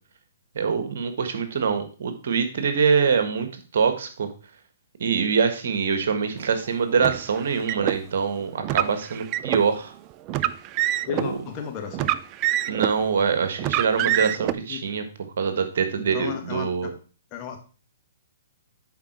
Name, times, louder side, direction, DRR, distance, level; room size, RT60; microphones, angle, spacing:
voice 1, 0.5-4.3 5.0-9.9 11.2-11.4 12.7-15.0 15.4-16.9, right 6 dB, 60° right, 8 dB, 1.6 m, -24 dB
Car, 7.0-8.0 8.6-9.6 10.3-11.3 11.9-13.0 13.6-14.5, right 13 dB, 30° right, 0.4 m, -25 dB
voice 2, 11.1-12.1 14.0-14.3 14.7-14.8 16.0-16.9 17.3-17.6, left 8 dB, 30° left, 3 dB, 1.8 m, -34 dB
10.5 x 5.0 x 4.5 m, 0.37 s
figure-of-eight pair, 125°, 0 cm